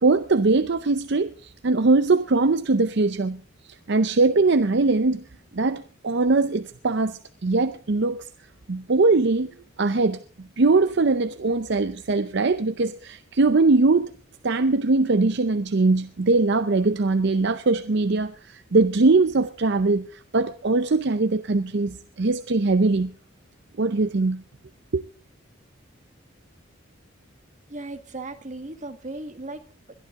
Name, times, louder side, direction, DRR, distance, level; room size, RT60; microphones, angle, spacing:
voice 1, 0.0-3.4 3.9-5.2 5.5-8.3 8.7-14.1 14.4-23.1 23.8-24.4 24.9-25.0, right 3 dB, 55° right, 0.6 m, -21 dB
voice 2, 27.7-29.9, right 2 dB, 35° right, 1.7 m, -37 dB
22.0 x 12.5 x 3.7 m
head